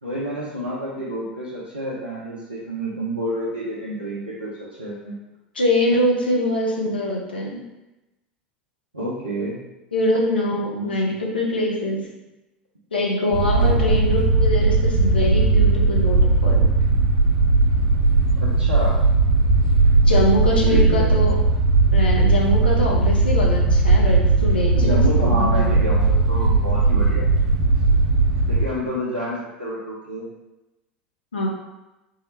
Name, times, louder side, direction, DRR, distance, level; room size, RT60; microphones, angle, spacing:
voice 1, 0.0-5.2 8.9-9.6 10.7-10.9 13.6-13.9 18.4-19.0 20.6-21.1 24.7-27.2 28.5-30.3, equal, 85° right, -8 dB, 0.6 m, -29 dB
voice 2, 5.5-7.6 9.9-12.1 12.9-16.7 20.0-21.4 21.9-25.8 31.3-31.5, left 1 dB, 75° left, -1 dB, 0.6 m, -23 dB
sound 1, 13.3-28.6, right 3 dB, 60° right, 0.9 m, -18 dB
3.7 x 2.1 x 3.1 m, 0.99 s
figure-of-eight pair, 75°, 5 cm